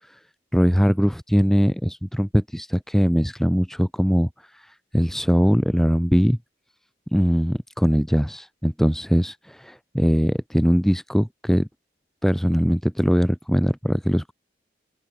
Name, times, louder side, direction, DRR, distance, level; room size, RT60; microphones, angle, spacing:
voice 1, 0.5-6.4 7.1-11.7 12.2-14.3, equal, ahead, 1.5 m, -21 dB
open air
head